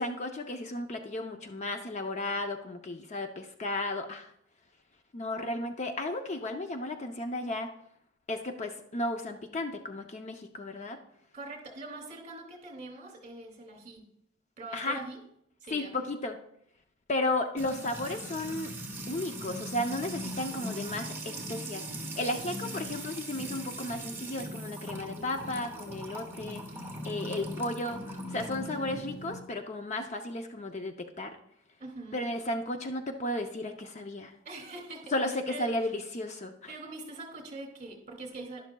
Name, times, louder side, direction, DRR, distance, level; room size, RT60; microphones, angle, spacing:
voice 1, 0.0-4.3 5.1-7.7 8.3-11.0 14.7-15.0 15.7-16.4 17.1-18.7 19.1-26.6 27.0-31.4 32.1-34.3 35.1-36.7, left 1 dB, 35° left, 5 dB, 0.6 m, -34 dB
voice 2, 11.3-14.1 14.6-15.2 15.6-16.1 27.4-27.8 31.8-32.2 34.4-35.7 36.7-38.6, right 2 dB, 35° right, 2 dB, 2.4 m, -43 dB
Music / Water tap faucet / Trickle dribble, 17.6-29.3, equal, 10° right, 1.5 m, -40 dB
12.0 x 11.0 x 2.3 m, 0.74 s
head